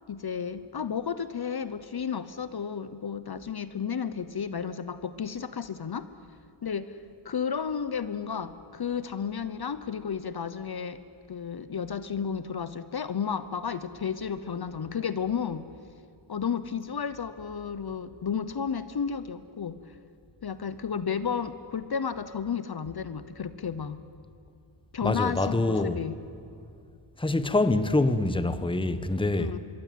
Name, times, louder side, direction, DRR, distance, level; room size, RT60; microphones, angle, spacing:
voice 1, 0.1-6.1 6.6-7.0 7.2-11.0 11.3-15.7 16.3-19.8 20.4-24.0 24.9-26.2 29.4-29.6, left 7 dB, 50° left, 0.9 m, -32 dB
voice 2, 25.0-26.0 27.2-29.5, left 2 dB, 10° left, 1.0 m, -25 dB
25.5 x 22.0 x 9.2 m
wide cardioid pair, 150°, 50 cm